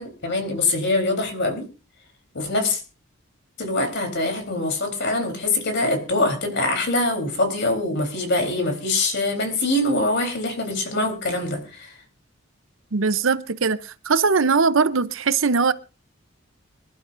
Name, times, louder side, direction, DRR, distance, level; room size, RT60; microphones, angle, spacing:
voice 1, 0.0-1.7 2.3-2.8 3.6-11.9, left 2 dB, 55° left, 3.8 m, -24 dB
voice 2, 12.9-15.7, right 4 dB, 65° right, 0.7 m, -20 dB
25.5 x 11.5 x 2.6 m
head